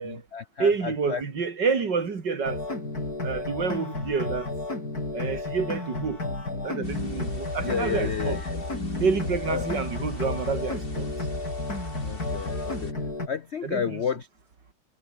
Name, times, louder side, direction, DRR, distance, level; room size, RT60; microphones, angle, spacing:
voice 1, 0.0-1.2 7.6-8.6 9.5-9.7 12.0-12.9 13.3-14.3, left 7 dB, 65° left, 0.6 m, -31 dB
voice 2, 0.6-2.6 3.2-4.5 5.1-6.2 6.6-8.4 9.0-11.1 13.6-14.0, right 5 dB, 55° right, 3.1 m, -28 dB
sound 1, 2.4-13.3, left 2 dB, 45° left, 6.6 m, -32 dB
sound 2, 6.8-12.9, left 2 dB, 25° left, 4.6 m, -38 dB
omnidirectional pair, 2.3 m